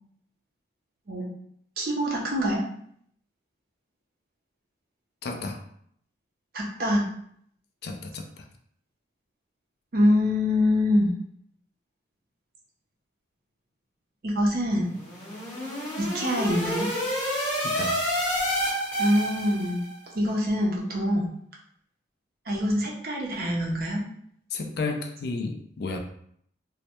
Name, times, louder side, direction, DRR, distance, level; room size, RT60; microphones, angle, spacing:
voice 1, 1.8-2.6 6.5-7.0 9.9-11.1 14.2-14.9 16.0-16.9 19.0-19.8 20.1-21.3 22.5-24.0, left 1 dB, 50° right, -2 dB, 0.5 m, -24 dB
voice 2, 5.2-5.6 7.8-8.5 17.6-18.0 24.5-26.0, left 3 dB, 55° left, 3 dB, 0.3 m, -32 dB
sound 1, 14.9-19.9, equal, 10° left, 1.0 m, -29 dB
2.1 x 2.1 x 2.8 m, 0.66 s
head